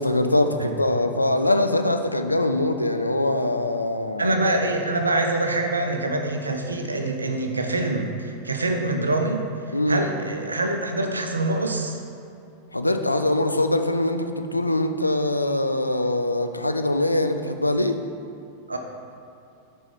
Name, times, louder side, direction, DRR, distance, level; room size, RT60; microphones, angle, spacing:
voice 1, 0.0-4.3 9.7-10.1 12.7-18.0, left 1 dB, 85° left, 7 dB, 0.4 m, -23 dB
voice 2, 4.2-12.0 18.7-18.8, right 2 dB, 80° right, 4 dB, 0.7 m, -25 dB
6.1 x 4.6 x 5.8 m, 2.5 s
figure-of-eight pair, 90°, 0 cm